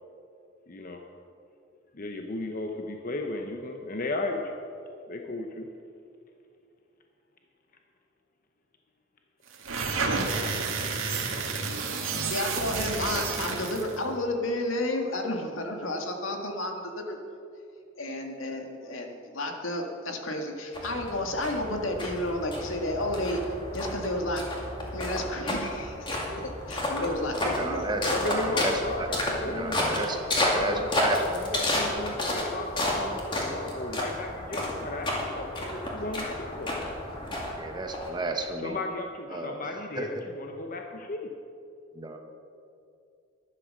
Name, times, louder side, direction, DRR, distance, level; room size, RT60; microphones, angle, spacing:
voice 1, 0.7-1.0 1.9-4.6 5.1-5.7 28.0-30.1 30.3-36.7 38.6-41.3, left 2 dB, 45° left, 3 dB, 0.8 m, -35 dB
sound 1, 9.5-14.0, right 4 dB, 90° right, 1.9 m, -30 dB
voice 2, 12.3-17.2 18.0-23.4 23.7-24.4 24.9-26.1 26.4-27.9, left 1 dB, 80° left, 3 dB, 1.8 m, -31 dB
sound 2, 20.7-38.5, left 1 dB, 25° left, 2.3 m, -31 dB
voice 3, 27.5-29.1 29.4-31.2 37.6-38.8 39.3-40.1 41.9-42.2, right 2 dB, 20° right, 5 dB, 1.0 m, -33 dB
12.5 x 11.0 x 6.5 m, 2.6 s
head